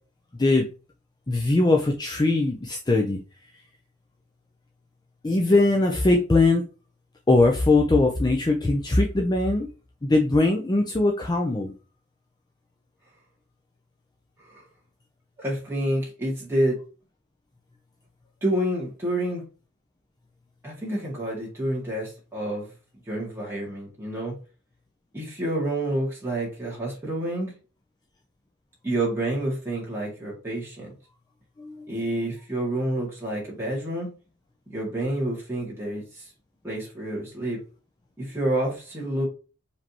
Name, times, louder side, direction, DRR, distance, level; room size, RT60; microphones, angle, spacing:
voice 1, 1.3-3.2 5.2-6.6 7.3-9.7 10.0-11.7 31.6-31.9, left 2 dB, 20° left, 0.4 m, -21 dB
voice 2, 15.4-16.8 18.4-19.4 20.6-22.7 23.1-24.4 25.1-27.5 28.8-30.9 31.9-34.1 34.7-36.3 36.6-37.6 38.2-39.3, right 1 dB, 10° right, 2.0 m, -28 dB
4.9 x 3.4 x 2.9 m
head